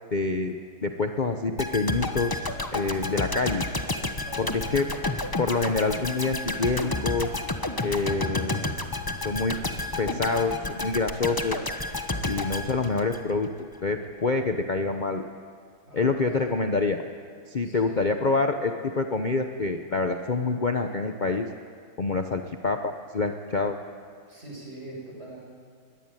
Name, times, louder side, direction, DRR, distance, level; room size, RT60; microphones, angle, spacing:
voice 1, 0.1-0.5 0.8-2.5 2.7-3.6 4.4-4.9 5.4-7.3 7.8-8.7 9.2-9.6 10.0-11.6 12.3-13.5 13.8-15.2 15.9-17.0 17.5-21.5 22.0-23.7, left 3 dB, 45° left, 5 dB, 0.5 m, -26 dB
sound 1, 1.6-13.6 13.9-14.1, left 2 dB, 15° left, 0.8 m, -31 dB
voice 2, 4.2-5.0 15.8-16.6 17.6-18.1 24.3-25.4, right 1 dB, 30° right, -2 dB, 7.0 m, -42 dB
22.0 x 18.5 x 9.2 m, 2.1 s
omnidirectional pair, 2.3 m